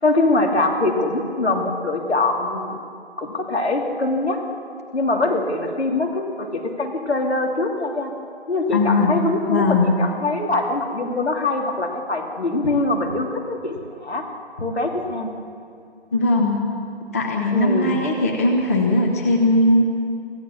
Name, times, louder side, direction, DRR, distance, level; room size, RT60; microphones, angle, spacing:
voice 1, 0.0-2.8 3.2-4.4 4.9-8.1 8.5-14.2 14.6-15.3 17.5-18.0, left 2 dB, 70° left, 1 dB, 3.1 m, -23 dB
voice 2, 8.7-9.2 9.5-9.9 16.1-16.6 17.1-19.9, left 2 dB, 15° left, 0 dB, 0.8 m, -19 dB
24.5 x 15.5 x 7.1 m, 2.5 s
figure-of-eight pair, 155°, 33 cm